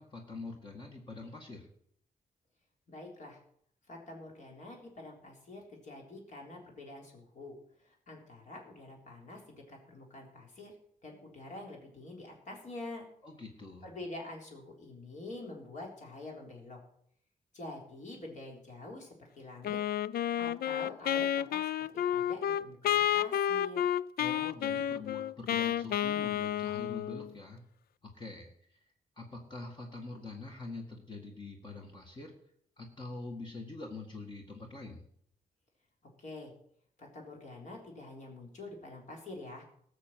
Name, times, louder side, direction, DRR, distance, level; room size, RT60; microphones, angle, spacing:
voice 1, 0.0-1.7 13.2-13.9 24.2-27.6 28.0-28.8 29.2-32.3 32.8-35.0, left 3 dB, 30° left, 1 dB, 1.9 m, -45 dB
voice 2, 2.9-3.4 3.9-7.6 7.8-10.7 11.0-13.1 13.8-16.8 17.5-19.8 20.4-23.9 36.2-36.5 37.0-39.6, left 2 dB, 55° left, 0 dB, 3.9 m, -46 dB
Wind instrument woodwind instrument, 19.6-27.3, left 10 dB, 85° left, 0.4 m, -31 dB
18.5 x 6.7 x 7.5 m, 0.66 s
wide cardioid pair, 175°, 15 cm